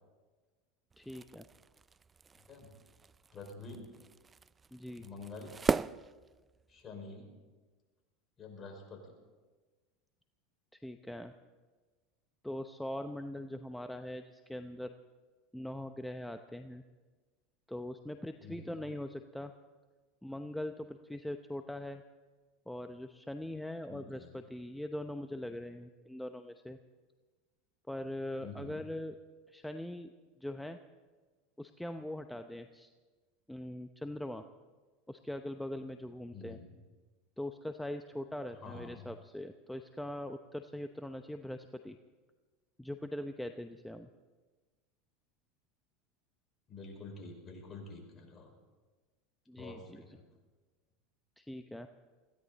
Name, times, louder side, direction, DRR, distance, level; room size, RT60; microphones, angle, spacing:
sound 1, 0.9-6.9, right 5 dB, 25° right, 0.4 m, -39 dB
voice 1, 1.0-1.4 4.7-5.1 10.7-11.3 12.4-14.9 15.5-16.8 17.7-19.5 20.2-22.0 22.7-26.8 27.9-29.2 29.5-30.1 30.4-30.8 31.6-32.9 33.5-34.4 35.1-36.6 37.4-42.0 42.8-44.1 49.5-50.0 51.4-51.9, left 1 dB, 5° left, 7 dB, 0.8 m, -41 dB
voice 2, 3.3-3.9 5.0-5.6 6.7-7.3 8.4-9.1 18.4-18.7 23.9-24.3 28.4-28.9 36.3-36.7 38.6-39.1 46.7-48.5 49.6-50.3, left 3 dB, 35° left, 2 dB, 5.3 m, -48 dB
21.5 x 16.0 x 4.1 m, 1.3 s
hypercardioid pair, 90°, 0 cm